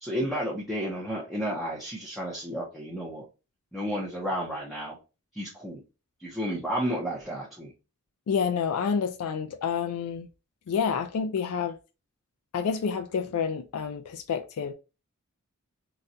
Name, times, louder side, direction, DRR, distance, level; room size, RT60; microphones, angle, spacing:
voice 1, 0.0-3.2 3.7-5.0 5.3-5.8 6.2-7.7, equal, ahead, 0.6 m, -32 dB
voice 2, 8.3-10.3 10.7-11.8 12.5-14.7, left 6 dB, 90° left, 0.4 m, -28 dB
4.0 x 2.2 x 2.5 m
head